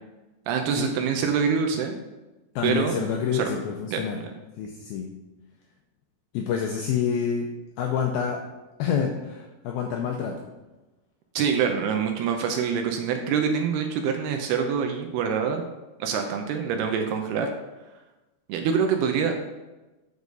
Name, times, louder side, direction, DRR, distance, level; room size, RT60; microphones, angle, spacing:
voice 1, 0.5-2.0 2.6-3.0 3.3-3.5 3.9-4.0 11.4-15.6 16.0-17.5 18.5-19.3, right 6 dB, 80° right, 4 dB, 2.5 m, -25 dB
voice 2, 2.6-4.2 4.6-5.1 6.3-7.5 7.8-8.4 8.8-10.4, left 7 dB, 85° left, 2 dB, 2.1 m, -27 dB
8.3 x 4.8 x 5.2 m, 1.1 s
omnidirectional pair, 5.0 m